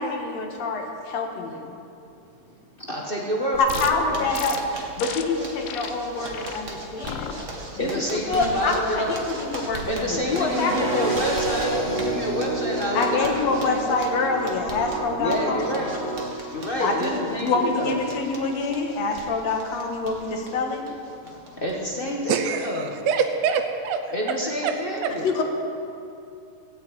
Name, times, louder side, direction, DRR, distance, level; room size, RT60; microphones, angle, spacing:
voice 1, 0.0-1.6 3.6-7.5 7.8-7.9 8.3-11.1 12.9-15.6 16.8-20.8 25.2-25.4, left 3 dB, 60° left, 3 dB, 2.5 m, -26 dB
voice 2, 2.7-4.3 7.8-9.2 9.8-14.1 15.1-16.0 16.5-18.0 20.8-20.9 21.2-22.9 24.1-25.4, equal, 30° left, -2 dB, 0.9 m, -28 dB
Zipper (clothing), 3.5-21.7 22.0-22.1 22.4-22.5 22.9-23.3, right 1 dB, 35° right, 1.4 m, -39 dB
sound 1, 3.7-3.9 4.3-4.6 5.0-5.2 5.6-5.9 6.3-6.6 7.0-7.3 7.8-8.2, left 11 dB, 80° left, 1.4 m, -35 dB
sound 2, 10.3-16.3, right 2 dB, 50° right, 0.6 m, -29 dB
voice 3, 22.3-24.0 24.6-24.7 25.0-25.1, right 6 dB, 70° right, 6 dB, 1.8 m, -24 dB
17.0 x 9.2 x 8.7 m, 2.6 s
omnidirectional pair, 3.6 m